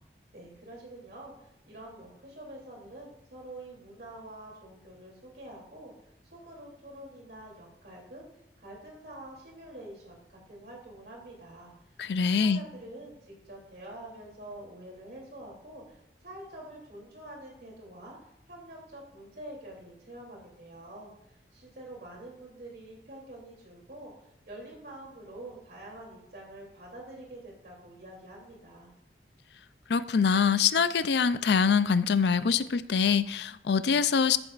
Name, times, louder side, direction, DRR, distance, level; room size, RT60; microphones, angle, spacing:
voice 1, 0.3-8.2 8.6-24.1 24.5-28.9, right 1 dB, 60° right, -2 dB, 3.1 m, -47 dB
voice 2, 12.0-12.6 29.9-34.4, left 6 dB, 75° left, 14 dB, 0.4 m, -24 dB
14.0 x 7.6 x 2.5 m, 0.81 s
head